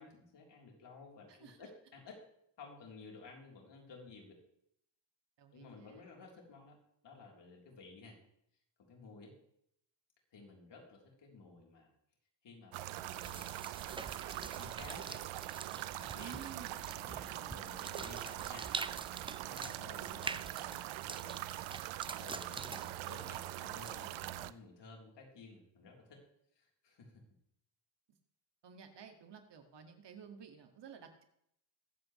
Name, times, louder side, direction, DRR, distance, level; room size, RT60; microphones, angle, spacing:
voice 1, 0.0-2.2 2.6-4.4 5.5-6.8 7.0-8.2 8.9-9.3 10.3-11.9 12.4-13.6 14.2-15.2 16.0-18.7 19.4-20.9 21.2-21.6 22.2-26.2 26.6-27.2, left 3 dB, 65° left, -1 dB, 3.7 m, -54 dB
voice 2, 1.3-1.7 5.4-6.0 16.1-16.9 28.6-31.2, right 7 dB, 65° right, 5 dB, 2.1 m, -52 dB
sound 1, 12.7-24.5, right 15 dB, 90° right, 0.6 m, -43 dB
sound 2, 13.1-24.3, right 3 dB, 10° right, 0.4 m, -46 dB
22.0 x 7.9 x 3.2 m, 0.74 s
cardioid pair, 75°, 45 cm